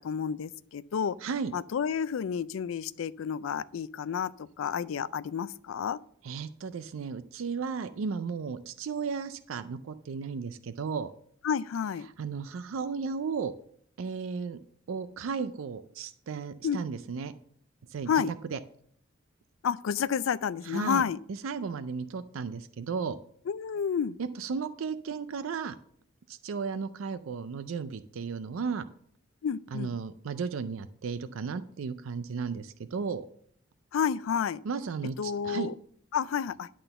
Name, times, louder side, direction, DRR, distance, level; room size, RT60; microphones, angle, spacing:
voice 1, 0.0-1.2 1.5-6.0 11.4-12.1 16.6-16.8 18.1-18.3 19.6-21.2 23.5-24.2 29.4-29.9 33.9-34.6 35.2-35.7 36.1-36.7, left 7 dB, 85° left, 0.4 m, -30 dB
voice 2, 1.2-1.5 6.2-11.1 12.2-13.5 14.0-14.6 14.9-17.3 17.9-18.6 20.6-21.0 21.4-23.2 24.2-25.8 26.3-28.9 29.7-33.2 34.6-35.7, right 5 dB, 90° right, 0.4 m, -34 dB
11.0 x 3.8 x 6.7 m
head